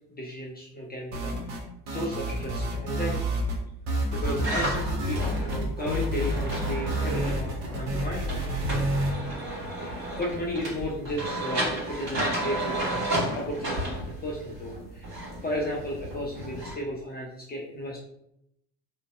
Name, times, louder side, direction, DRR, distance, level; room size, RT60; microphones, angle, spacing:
voice 1, 0.1-1.6 1.9-3.3 4.1-8.3 9.8-18.0, left 1 dB, 20° left, -3 dB, 0.4 m, -34 dB
sound 1, 1.1-1.6 1.9-3.6 3.9-9.1, right 1 dB, 65° right, 0.8 m, -29 dB
sound 2, 4.1-16.7, right 1 dB, 45° right, 1.3 m, -33 dB
2.5 x 2.1 x 2.3 m, 0.79 s
figure-of-eight pair, 50°, 49 cm